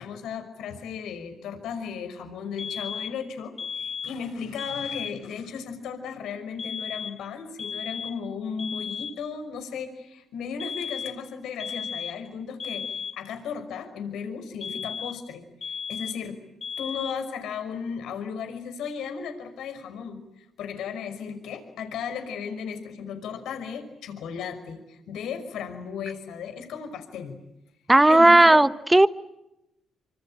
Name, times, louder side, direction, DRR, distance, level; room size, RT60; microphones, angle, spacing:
voice 1, 0.0-16.4 16.8-27.3 28.1-28.6, left 6 dB, 80° left, 7 dB, 5.6 m, -35 dB
sound 1, 2.6-3.2 3.6-4.2 4.6-5.2 6.6-7.3 7.6-8.3 8.6-9.3 10.6-11.3 11.6-12.3 12.6-13.3 14.6-15.3 15.6-16.3 16.6-17.3, left 6 dB, 45° left, 1.2 m, -35 dB
voice 2, 27.9-29.1, right 1 dB, 10° right, 13 dB, 1.2 m, -15 dB
26.0 x 26.0 x 8.9 m, 0.88 s
cardioid pair, 90°, 0 cm